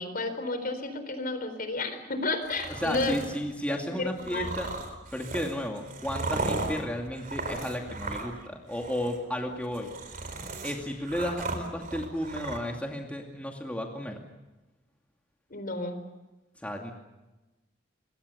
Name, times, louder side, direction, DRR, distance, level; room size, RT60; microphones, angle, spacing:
voice 1, 0.0-3.1 3.7-4.5 15.5-16.0, left 2 dB, 50° left, 10 dB, 4.2 m, -32 dB
sound 1, 2.4-3.4 4.2-8.5 8.7-9.2 9.6-12.6, right 3 dB, 45° right, 4.1 m, -36 dB
voice 2, 2.8-4.7 5.1-9.9 10.6-14.2 16.6-16.9, equal, 5° left, 1 dB, 2.4 m, -33 dB
26.5 x 22.5 x 6.9 m, 1.1 s
head